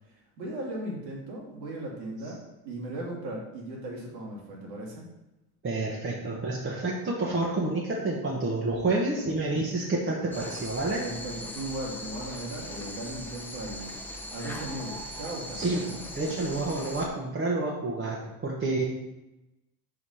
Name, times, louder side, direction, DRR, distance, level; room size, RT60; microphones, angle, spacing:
voice 1, 0.1-2.4 2.6-5.0 11.0-13.9 14.3-16.0, right 1 dB, 85° right, -2 dB, 2.5 m, -37 dB
voice 2, 5.6-11.0 15.5-15.8 16.1-18.8, right 2 dB, 25° right, -4 dB, 1.3 m, -29 dB
sound 1, 10.3-17.1, left 1 dB, 5° left, 0.9 m, -40 dB
5.0 x 4.9 x 5.7 m, 0.97 s
supercardioid pair, 95°, 49 cm